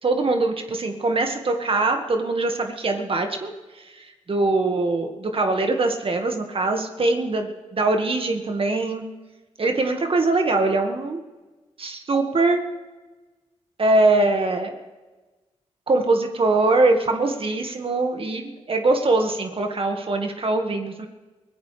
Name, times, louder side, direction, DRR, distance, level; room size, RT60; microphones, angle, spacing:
voice 1, 0.0-9.1 9.6-11.2 11.8-12.6 13.8-14.8 15.9-21.1, right 2 dB, 50° right, 4 dB, 1.8 m, -22 dB
23.5 x 16.5 x 3.4 m, 1.2 s
cardioid pair, 60°, 12 cm